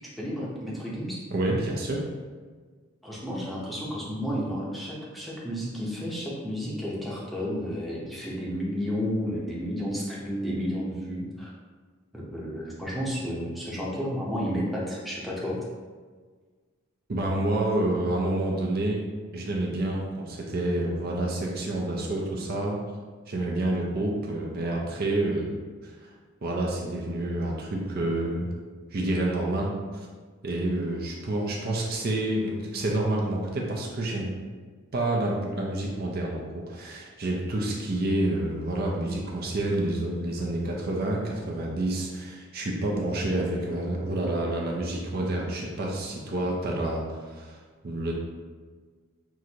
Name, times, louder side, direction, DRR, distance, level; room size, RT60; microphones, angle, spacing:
voice 1, 0.2-1.2 3.0-11.5 12.1-15.6, equal, ahead, -6 dB, 0.7 m, -32 dB
voice 2, 1.3-2.0 17.1-19.0 19.3-22.8 23.3-25.5 25.8-26.1 26.4-28.5 28.9-30.1 30.4-34.3 34.9-47.6 47.8-48.1, right 1 dB, 45° right, -2 dB, 0.5 m, -28 dB
6.0 x 2.5 x 2.8 m, 1.5 s
head